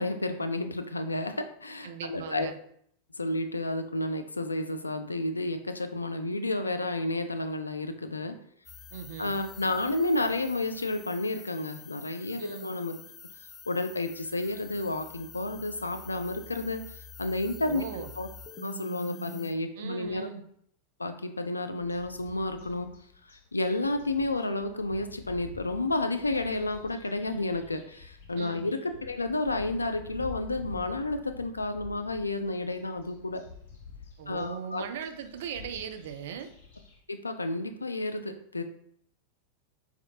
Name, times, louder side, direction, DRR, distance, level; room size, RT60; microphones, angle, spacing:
voice 1, 0.0-2.5 3.2-8.4 9.2-13.0 13.7-16.8 17.2-17.8 18.2-18.3 18.6-20.3 21.0-22.9 23.5-33.4 34.3-34.8 37.1-38.6, left 2 dB, 80° left, 8 dB, 0.3 m, -31 dB
voice 2, 1.8-2.6 8.9-9.3 12.4-12.7 17.7-18.1 19.8-20.4 28.3-28.7 34.2-36.5, right 8 dB, 55° right, 7 dB, 0.4 m, -39 dB
sound 1, 8.7-19.5, left 3 dB, 20° left, 0.5 m, -47 dB
sound 2, 21.8-37.0, left 5 dB, 55° left, 0.8 m, -49 dB
4.3 x 2.3 x 2.7 m, 0.66 s
figure-of-eight pair, 90°, 0 cm